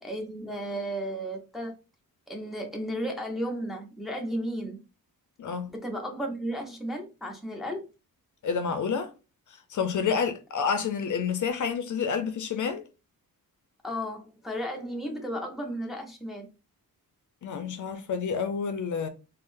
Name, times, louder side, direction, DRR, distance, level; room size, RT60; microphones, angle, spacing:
voice 1, 0.0-1.7 2.3-4.8 5.7-7.9 13.8-16.5, equal, ahead, 0.5 m, -34 dB
voice 2, 5.4-5.7 8.4-9.1 9.7-12.8 17.4-19.1, left 6 dB, 55° left, 0.5 m, -29 dB
3.5 x 2.0 x 2.5 m
wide cardioid pair, 155°, 36 cm